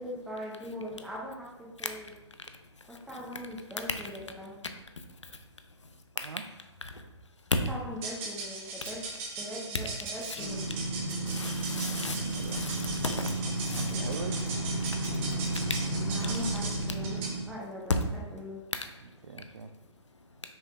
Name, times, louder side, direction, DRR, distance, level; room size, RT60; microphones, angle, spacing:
voice 1, 0.0-2.1 2.9-4.6 7.7-9.0 9.4-10.6 16.1-17.2 17.5-18.6, left 1 dB, ahead, -4 dB, 0.4 m, -40 dB
sound 1, 7.9-17.5, right 3 dB, 25° right, 0.8 m, -39 dB
sound 2, 10.4-17.4, right 2 dB, 40° left, 1.0 m, -33 dB
voice 2, 11.3-13.9 15.5-15.8, left 3 dB, 80° left, 7 dB, 0.6 m, -38 dB
voice 3, 11.9-12.7 13.7-14.3 19.0-19.7, right 5 dB, 65° right, 5 dB, 0.4 m, -42 dB
5.4 x 3.3 x 2.4 m, 0.98 s
figure-of-eight pair, 130°, 15 cm